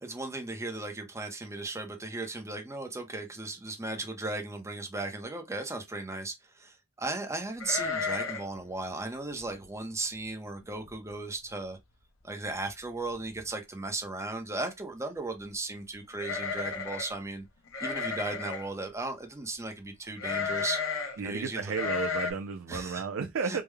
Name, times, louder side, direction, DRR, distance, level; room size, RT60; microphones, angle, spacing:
voice 1, 0.0-11.8 12.2-17.4 17.8-20.8 21.2-21.6 22.7-23.0 23.4-23.6, right 2 dB, 15° right, 0.7 m, -36 dB
sound 1, 7.6-8.6 8.8-8.9 9.4-9.7 10.2-10.3 10.6-11.1 11.4-11.5 12.7-12.8 13.1-13.5 16.1-17.2 17.7-18.7 20.2-21.2 21.7-22.3, left 5 dB, 75° left, 0.9 m, -33 dB
voice 2, 21.2-23.6, right 5 dB, 75° right, 0.4 m, -33 dB
3.6 x 2.2 x 3.2 m
head